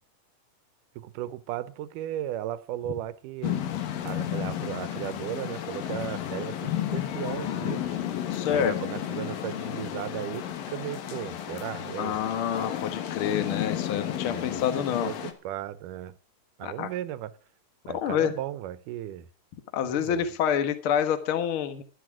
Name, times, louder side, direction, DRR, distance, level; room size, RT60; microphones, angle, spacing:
voice 1, 1.0-3.6 4.0-8.0 8.5-12.2 14.2-14.6 15.0-16.2 16.6-17.4 17.9-19.3 19.8-20.3, right 12 dB, 75° right, 2.2 m, -36 dB
sound 1, 3.4-15.3, left 11 dB, 90° left, 3.1 m, -32 dB
voice 2, 8.3-8.7 12.0-15.1 16.6-16.9 17.9-18.3 19.7-21.8, left 9 dB, 50° left, 1.7 m, -27 dB
12.0 x 11.5 x 6.0 m
omnidirectional pair, 3.9 m